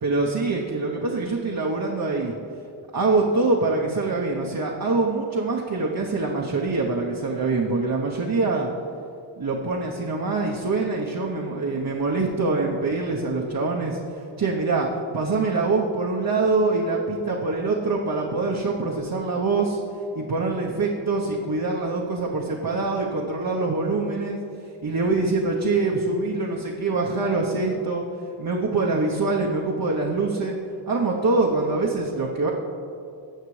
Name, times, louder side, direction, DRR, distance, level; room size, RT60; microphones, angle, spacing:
voice 1, 0.0-2.3 2.9-8.7 9.4-14.9 15.1-19.8 20.1-24.4 24.8-28.0 28.4-30.6 30.9-32.5, right 3 dB, 50° right, -2 dB, 1.0 m, -24 dB
17.0 x 6.5 x 3.2 m, 2.5 s
wide cardioid pair, 80°, 45 cm